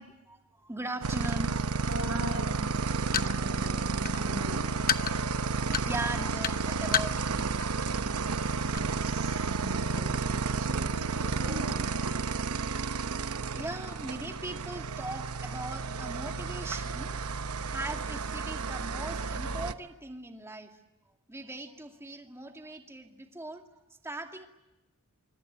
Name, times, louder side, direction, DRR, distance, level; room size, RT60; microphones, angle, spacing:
voice 1, 0.0-1.6 5.8-7.4 13.1-17.2 17.7-20.7 21.3-23.7 24.0-24.5, right 1 dB, 10° right, 4 dB, 2.3 m, -40 dB
sound 1, 1.0-19.7, right 4 dB, 85° right, 0.9 m, -32 dB
voice 2, 1.8-2.6 3.0-4.7 8.8-10.1 10.6-11.9, equal, 70° right, -5 dB, 7.9 m, -40 dB
sound 2, 2.8-7.7 8.0-8.2 8.5-8.8, left 9 dB, 40° left, 0.8 m, -31 dB
26.5 x 23.5 x 8.7 m, 1.0 s
head